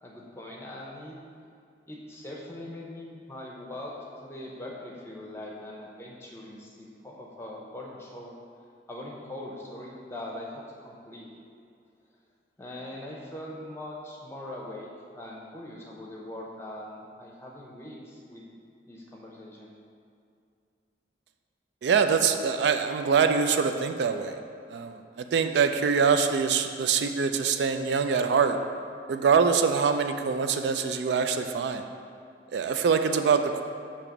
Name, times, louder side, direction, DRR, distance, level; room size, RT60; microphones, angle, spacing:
voice 1, 0.0-1.2 1.9-8.3 8.9-11.3 12.6-14.9 15.1-18.4 18.9-19.7, left 1 dB, 15° left, -3 dB, 0.8 m, -41 dB
voice 2, 21.8-24.4 24.7-28.6 29.1-31.8 32.5-33.6, right 6 dB, 75° right, 7 dB, 0.3 m, -24 dB
6.7 x 2.9 x 5.9 m, 2.4 s
head